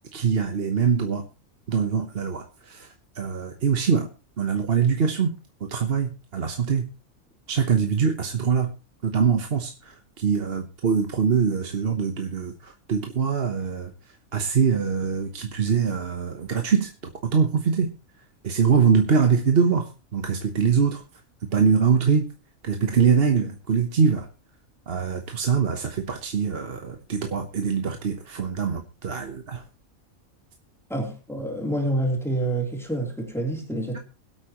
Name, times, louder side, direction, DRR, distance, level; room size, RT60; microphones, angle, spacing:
voice 1, 0.1-1.2 1.7-4.1 4.4-5.4 5.6-6.9 7.5-8.7 9.0-13.9 14.3-16.9 17.3-17.9 18.4-21.0 21.4-22.3 22.6-24.3 24.9-29.6, right 6 dB, 45° right, 1.2 m, -23 dB
voice 2, 30.9-34.0, right 1 dB, ahead, 3.4 m, -27 dB
22.0 x 8.4 x 3.0 m
omnidirectional pair, 1.5 m